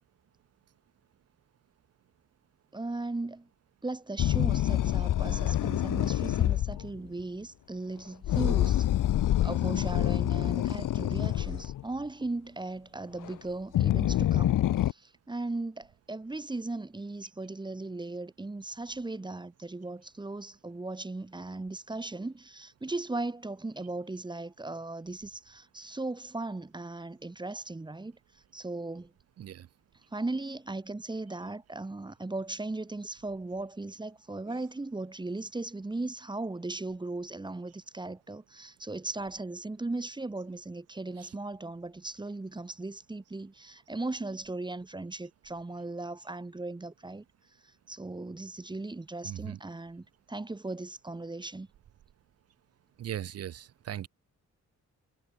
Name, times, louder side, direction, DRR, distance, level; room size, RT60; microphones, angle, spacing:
voice 1, 2.7-3.5 3.8-8.9 9.4-29.1 30.1-47.2 47.6-51.7, right 2 dB, 15° right, 3.5 m, -37 dB
sound 1, 4.2-6.9 8.2-11.8 13.2-13.3 13.7-14.9, left 12 dB, 90° left, 1.3 m, -26 dB
voice 2, 49.2-49.6 53.0-53.5 53.9-54.1, right 11 dB, 50° right, 0.6 m, -37 dB
wide cardioid pair, 165°, 31 cm